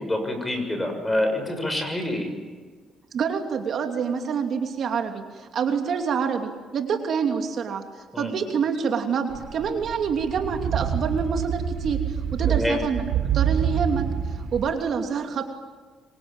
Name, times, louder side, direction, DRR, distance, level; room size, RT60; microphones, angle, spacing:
voice 1, 0.0-2.3 8.1-8.3 12.5-12.8, left 1 dB, 10° left, 5 dB, 6.8 m, -26 dB
voice 2, 3.1-13.0 13.3-14.0 14.3-15.4, right 6 dB, 55° right, 4 dB, 2.9 m, -27 dB
sound 1, 9.3-14.7, right 8 dB, 75° right, 3.4 m, -27 dB
26.5 x 24.5 x 9.0 m, 1.5 s
cardioid pair, 115°, 0 cm